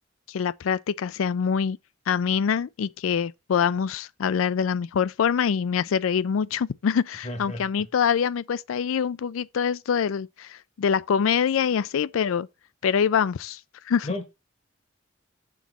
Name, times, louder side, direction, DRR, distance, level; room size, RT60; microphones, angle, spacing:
voice 1, 0.3-1.8 2.1-12.5 12.8-13.6 13.9-14.1, left 7 dB, 80° left, 0.4 m, -25 dB
voice 2, 7.2-7.7 14.0-14.2, left 1 dB, 35° left, 0.9 m, -33 dB
6.1 x 4.1 x 6.1 m
head